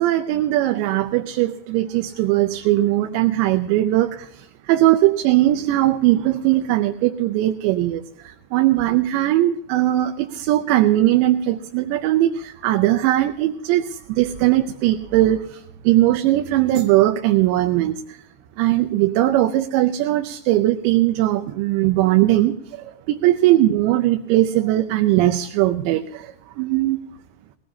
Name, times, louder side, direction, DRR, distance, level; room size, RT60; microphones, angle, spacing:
voice 1, 0.0-18.2 18.6-27.0, right 14 dB, 85° right, 6 dB, 3.0 m, -19 dB
20.5 x 18.5 x 2.8 m, 0.76 s
omnidirectional pair, 5.0 m